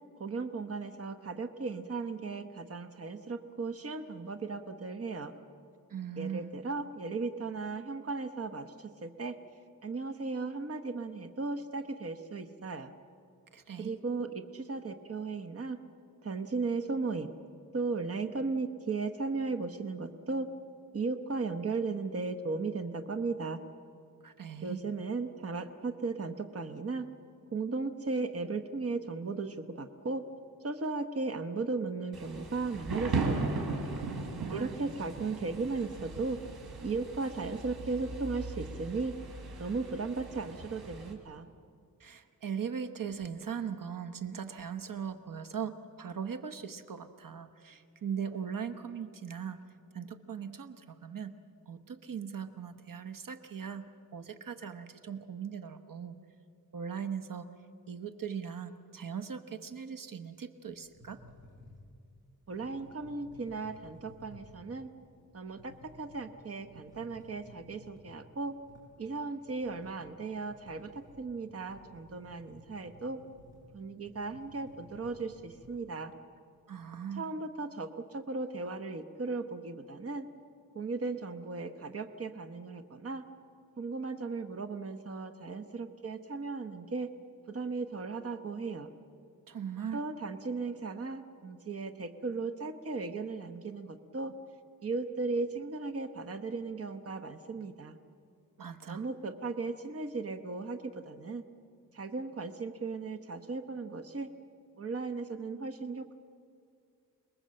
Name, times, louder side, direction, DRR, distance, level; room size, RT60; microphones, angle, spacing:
voice 1, 0.2-5.3 6.2-9.4 9.8-12.9 13.8-15.8 16.2-17.3 17.7-20.5 20.9-23.6 24.6-27.1 27.5-30.2 30.6-33.5 34.5-36.4 36.8-39.1 39.6-41.5 62.5-64.9 65.3-68.5 69.0-73.2 73.7-76.1 77.1-80.3 80.7-83.2 83.8-87.1 87.5-88.9 89.9-94.3 94.8-98.0 98.9-101.4 101.9-104.3 104.8-106.1, right 3 dB, 40° right, 8 dB, 1.1 m, -36 dB
voice 2, 5.9-6.5 13.5-13.9 24.2-24.8 34.3-34.7 42.0-49.6 49.9-51.3 51.7-53.8 54.1-56.2 56.7-57.5 57.9-61.2 76.7-77.3 89.5-90.0 98.6-99.0, right 7 dB, 60° right, 9 dB, 1.2 m, -39 dB
Thunder / Rain, 32.1-41.1, right 3 dB, 80° right, 3.8 m, -38 dB
sound 1, 60.7-75.7, left 1 dB, 10° right, 6.5 m, -57 dB
28.0 x 21.0 x 7.8 m, 2.4 s
wide cardioid pair, 125°, 37 cm